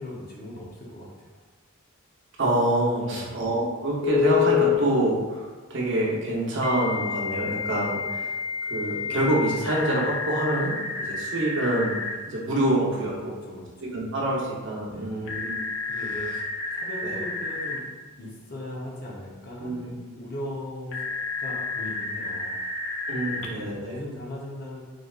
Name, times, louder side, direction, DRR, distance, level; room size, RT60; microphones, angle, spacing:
voice 1, 0.0-1.4 3.0-3.3 12.5-13.7 14.9-16.4 16.7-17.8 18.2-19.8 20.1-21.0 21.3-22.6 23.3-24.8, left 1 dB, 45° left, -4 dB, 0.8 m, -39 dB
voice 2, 2.4-8.4 8.6-12.0 12.3-13.3 13.9-15.6 15.9-16.0 17.0-17.2 19.6-19.9 23.1-24.0, right 1 dB, 55° right, -4 dB, 0.9 m, -26 dB
Telephone, 4.0-4.8 6.6-12.2 15.3-17.8 20.9-23.5, left 6 dB, 65° left, 0.5 m, -29 dB
3.9 x 3.3 x 2.4 m, 1.4 s
head